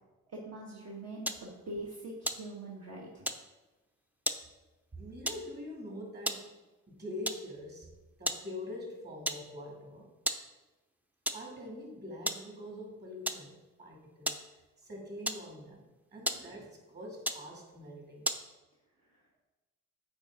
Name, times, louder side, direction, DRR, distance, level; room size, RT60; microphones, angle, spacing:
voice 1, 0.3-3.2 19.1-19.4, right 1 dB, 55° right, -4 dB, 1.4 m, -43 dB
sound 1, 1.3-1.5 2.2-2.9 3.2-3.5 4.3-4.5 5.3-5.5 6.1-6.5 7.3-7.5 8.3-8.5 8.8-8.9 9.3-9.6 10.3-10.5 11.3-11.5 12.3-12.5 13.3-13.5 14.3-14.5 15.2-15.8 16.3-16.6 17.2-17.5 18.2-18.5, right 1 dB, 5° right, 0.5 m, -35 dB
voice 2, 4.9-6.5 6.9-7.9 8.2-10.1 11.3-14.4 14.8-18.3, left 1 dB, 35° right, -1 dB, 2.6 m, -44 dB
8.8 x 4.7 x 3.8 m, 1.1 s
cardioid pair, 90°, 30 cm